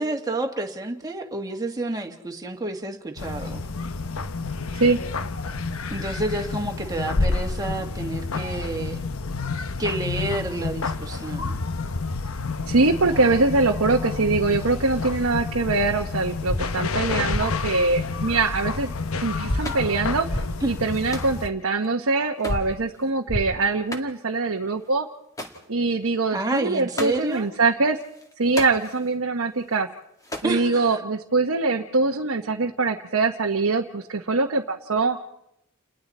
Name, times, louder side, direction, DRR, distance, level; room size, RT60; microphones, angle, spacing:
voice 1, 0.0-3.6 5.9-9.0 9.8-11.6 20.6-20.7 26.3-27.5 30.4-31.0, right 2 dB, 15° right, 2 dB, 1.9 m, -29 dB
sound 1, 3.2-21.5, left 3 dB, 70° left, 0.9 m, -29 dB
voice 2, 12.7-18.9 19.2-25.1 25.7-28.0 28.4-29.9 30.4-35.2, right 3 dB, 65° right, 1 dB, 1.0 m, -23 dB
sound 2, 16.5-16.6 17.3-17.4 19.5-19.6 20.3-20.4 22.5-22.6 23.3-23.4, left 1 dB, 45° left, 2.7 m, -25 dB
sound 3, 19.6-20.0 20.9-23.1 23.7-24.4 24.7-24.9 25.1-25.7 26.1-27.5 27.9-29.2 29.5-30.5, left 1 dB, 15° left, 2.2 m, -39 dB
29.5 x 21.0 x 4.3 m, 0.83 s
head